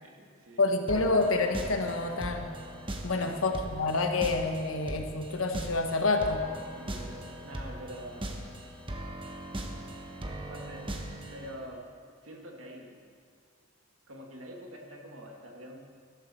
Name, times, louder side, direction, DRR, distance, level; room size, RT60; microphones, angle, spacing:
voice 1, 0.0-0.7 3.0-3.4 6.0-6.1 6.8-8.4 10.3-11.0 11.3-11.8 12.2-13.0 14.1-15.8, equal, 90° right, 0 dB, 2.1 m, -46 dB
voice 2, 0.6-2.5 3.0-6.4, left 3 dB, 90° left, 5 dB, 1.2 m, -28 dB
sound 1, 0.9-11.5, right 1 dB, 25° right, 1.1 m, -40 dB
13.0 x 13.0 x 4.4 m, 2.2 s
head